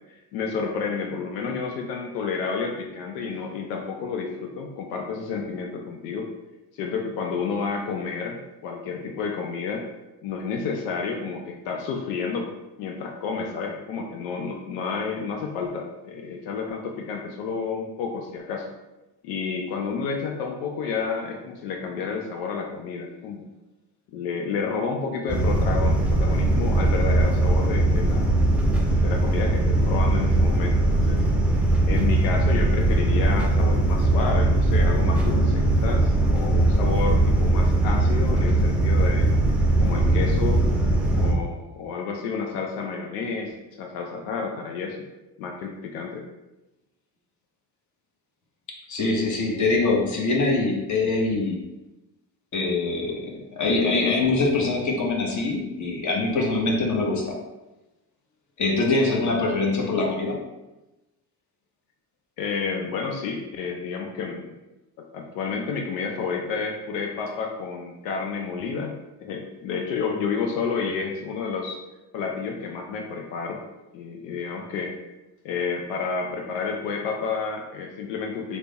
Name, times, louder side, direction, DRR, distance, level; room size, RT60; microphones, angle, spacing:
voice 1, 0.3-6.3 6.8-9.8 10.2-12.5 12.8-18.7 19.2-23.4 24.1-28.4 29.0-31.2 31.8-39.3 39.8-40.7 41.1-45.0 45.4-46.2 62.4-64.5 65.1-68.9 69.2-71.8 72.1-73.6 73.9-74.9 75.4-78.6, left 5 dB, 90° left, 2 dB, 0.5 m, -30 dB
sound 1, 25.3-41.3, right 2 dB, 5° right, 0.6 m, -20 dB
voice 2, 48.7-51.6 52.5-57.3 58.6-60.4, left 3 dB, 40° left, -1 dB, 1.0 m, -24 dB
3.3 x 2.1 x 3.9 m, 1.0 s
supercardioid pair, 70°, 48 cm